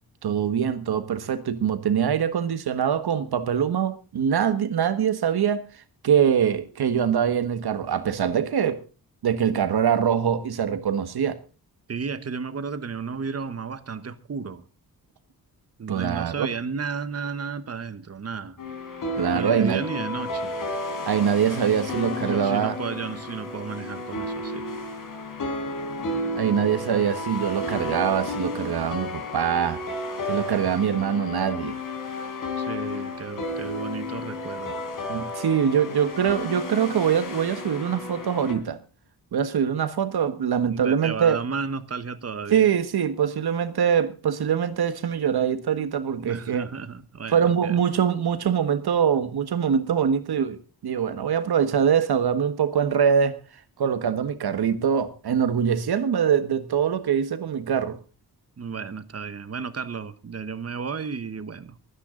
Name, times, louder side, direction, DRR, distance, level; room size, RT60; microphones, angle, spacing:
voice 1, 0.2-5.6 6.0-8.8 9.2-11.4 15.9-16.5 19.2-19.8 21.1-22.7 26.3-29.8 30.2-31.8 35.1-38.8 39.3-41.4 42.5-46.6 47.3-53.4 53.8-58.0, right 8 dB, 80° right, 1.6 m, -23 dB
voice 2, 11.9-14.6 15.8-18.6 19.3-20.6 22.2-24.7 32.6-34.8 40.6-42.7 46.2-47.8 58.6-61.8, right 5 dB, 40° right, 1.2 m, -33 dB
sound 1, 18.6-38.5, left 2 dB, 55° left, 3.8 m, -32 dB
24.0 x 9.9 x 3.9 m
wide cardioid pair, 160°, 38 cm